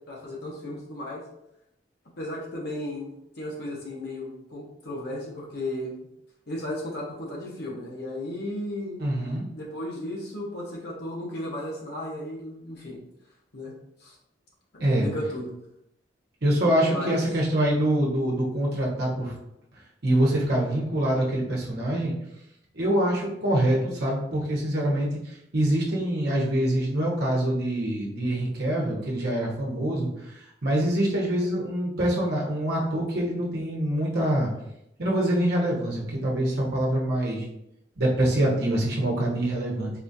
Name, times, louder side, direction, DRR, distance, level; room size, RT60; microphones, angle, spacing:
voice 1, 0.1-1.2 2.2-6.0 6.5-9.0 9.5-13.0 13.5-13.7 14.0-14.2 14.7-15.5 16.9-17.2, left 1 dB, 65° left, -3 dB, 1.0 m, -35 dB
voice 2, 9.0-9.4 14.8-15.1 16.4-19.3 20.0-22.1 22.7-34.5 35.0-37.5 38.0-39.9, right 1 dB, 65° right, -3 dB, 1.0 m, -25 dB
4.0 x 2.4 x 2.7 m, 0.82 s
head